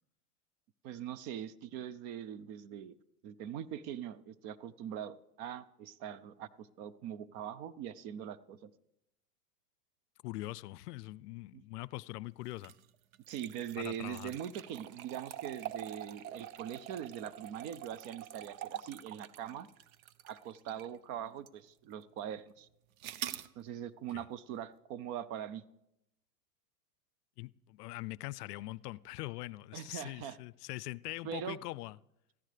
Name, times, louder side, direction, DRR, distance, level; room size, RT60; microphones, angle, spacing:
voice 1, 0.8-2.9 3.2-8.7 11.5-11.6 13.3-19.7 20.2-22.7 23.6-25.6 29.7-30.4 31.2-31.6, right 9 dB, 35° right, 0.4 m, -42 dB
voice 2, 10.2-12.7 13.8-14.3 24.1-24.3 27.4-32.0, left 19 dB, 70° left, 0.5 m, -42 dB
sound 1, 12.5-21.0 21.5-21.6 23.0-23.5, right 11 dB, 55° right, 0.9 m, -45 dB
17.5 x 14.5 x 3.3 m
hypercardioid pair, 115°, 48 cm